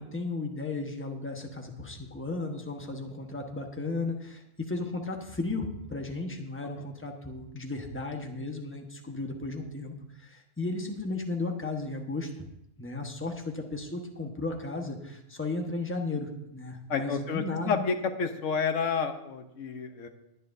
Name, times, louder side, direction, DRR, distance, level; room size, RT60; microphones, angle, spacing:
voice 1, 0.0-12.5 12.8-17.9, left 3 dB, 10° left, 2 dB, 1.2 m, -35 dB
voice 2, 16.9-20.1, left 5 dB, 85° left, 7 dB, 1.3 m, -30 dB
20.5 x 9.5 x 2.7 m, 0.82 s
omnidirectional pair, 1.3 m